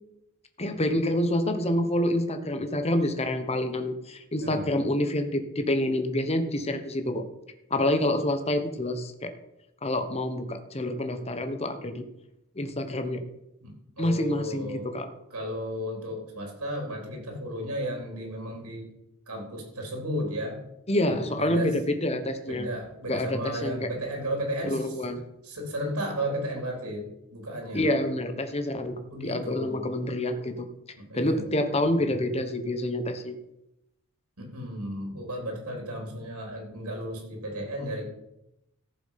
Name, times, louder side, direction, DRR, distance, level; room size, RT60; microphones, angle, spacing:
voice 1, 0.6-7.3 7.7-9.3 9.8-12.0 12.5-13.2 14.0-15.1 20.9-22.7 23.1-23.9 24.6-25.3 27.7-29.0 29.2-30.7 31.1-33.4, left 1 dB, 30° left, 8 dB, 1.3 m, -27 dB
voice 2, 14.0-14.9 15.3-18.9 19.3-20.6 21.0-21.7 22.5-25.0 25.4-27.9 29.0-29.9 31.0-31.5 34.4-38.1, equal, 85° right, 2 dB, 3.9 m, -34 dB
14.5 x 7.2 x 5.9 m, 0.86 s
head